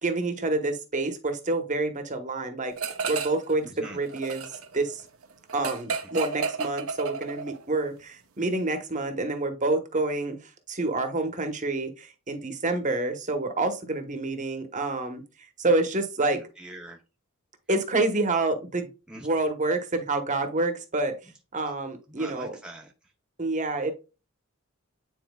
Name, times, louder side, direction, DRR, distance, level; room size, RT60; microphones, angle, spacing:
voice 1, 0.0-2.7 3.1-3.7 3.9-4.5 4.7-5.0 5.5-15.2 15.6-16.4 17.7-18.9 19.1-21.2 21.5-22.6 23.4-23.9, right 2 dB, 35° right, 1.1 m, -28 dB
sound 1, 2.8-3.5 3.8-7.6, right 5 dB, 80° right, 0.9 m, -32 dB
voice 2, 3.6-4.0 16.3-17.0 19.1-19.3 22.1-22.9, right 1 dB, 5° right, 0.7 m, -43 dB
9.3 x 4.4 x 2.3 m
head